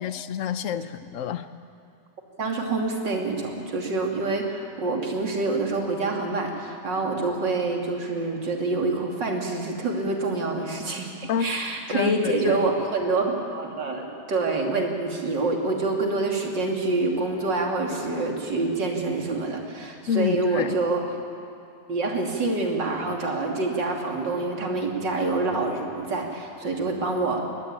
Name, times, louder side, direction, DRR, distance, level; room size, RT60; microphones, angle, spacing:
voice 1, 0.0-1.5 11.3-11.5 11.9-12.7 20.1-20.8, left 8 dB, 55° left, 12 dB, 1.1 m, -28 dB
voice 2, 2.4-21.0 21.9-27.4, right 3 dB, 85° right, 1 dB, 3.4 m, -26 dB
21.5 x 20.0 x 8.9 m, 2.5 s
omnidirectional pair, 1.9 m